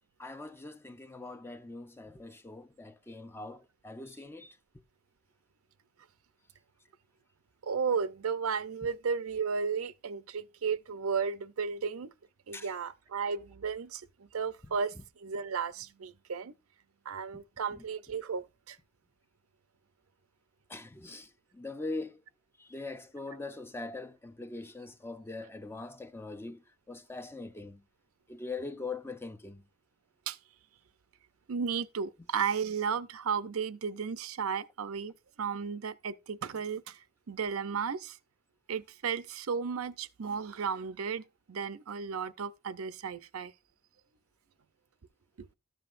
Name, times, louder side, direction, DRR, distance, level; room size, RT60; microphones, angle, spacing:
voice 1, 0.2-4.6 12.5-12.7 14.6-14.7 17.3-17.4 20.7-22.2 22.6-26.6 26.9-27.8 28.3-29.6, left 3 dB, 10° left, 0.5 m, -42 dB
voice 2, 7.6-12.1 12.5-16.5 17.1-18.8 30.3-30.4 31.5-37.0 37.3-38.2 38.7-43.5 45.4-45.5, right 6 dB, 75° right, 0.6 m, -34 dB
13.0 x 7.7 x 2.5 m
head